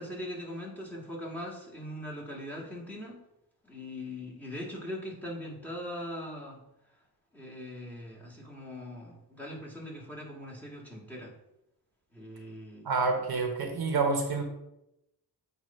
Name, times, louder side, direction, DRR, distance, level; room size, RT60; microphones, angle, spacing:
voice 1, 0.0-3.2 3.6-6.6 7.3-11.3 12.1-12.9, left 1 dB, 5° left, -3 dB, 1.9 m, -41 dB
voice 2, 12.8-14.4, right 4 dB, 60° right, 3 dB, 1.2 m, -28 dB
7.9 x 2.8 x 5.4 m, 0.85 s
cardioid pair, 95°, 41 cm